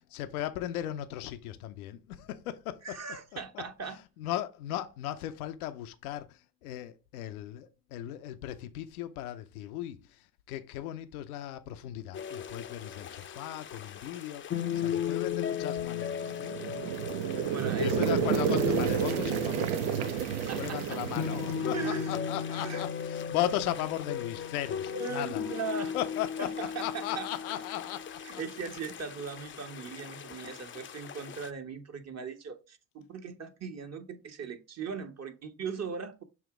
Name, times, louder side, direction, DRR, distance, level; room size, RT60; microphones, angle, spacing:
voice 1, 0.1-3.0 3.5-14.5 14.7-16.6 17.8-20.2 20.5-25.5 25.9-28.4, left 12 dB, 80° left, 0.6 m, -37 dB
voice 2, 2.8-4.0 17.5-18.2 20.4-21.0 21.7-22.1 22.5-22.8 24.9-25.9 26.4-27.3 28.2-36.2, right 5 dB, 35° right, 1.3 m, -39 dB
sound 1, 12.1-31.5, left 8 dB, 30° left, 0.6 m, -36 dB
sound 2, 16.3-22.4, right 10 dB, 85° right, 0.6 m, -31 dB
7.0 x 2.9 x 4.8 m
hypercardioid pair, 70°, 43 cm